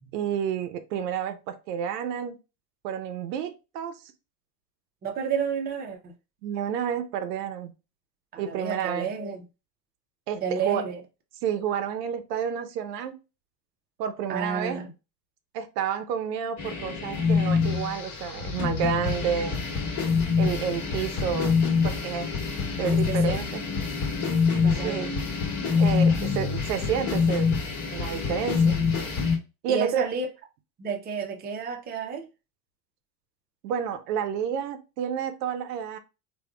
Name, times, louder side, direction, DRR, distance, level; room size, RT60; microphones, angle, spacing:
voice 1, 0.1-2.4 2.8-4.1 6.4-7.7 8.4-9.1 10.3-10.9 11.4-13.1 14.0-14.8 15.5-19.6 20.4-21.5 21.8-22.3 22.8-23.7 24.8-25.1 25.8-27.5 27.9-28.8 29.6-30.1 33.6-36.0, right 8 dB, 75° right, 0.7 m, -30 dB
voice 2, 5.0-6.1 8.3-9.4 10.4-11.0 14.3-14.9 22.9-23.4 24.6-25.1 29.7-30.3 30.8-32.3, right 6 dB, 20° right, 0.6 m, -31 dB
sound 1, 16.6-29.4, left 5 dB, 35° left, 1.3 m, -25 dB
3.5 x 2.3 x 2.3 m
hypercardioid pair, 100°, 50 cm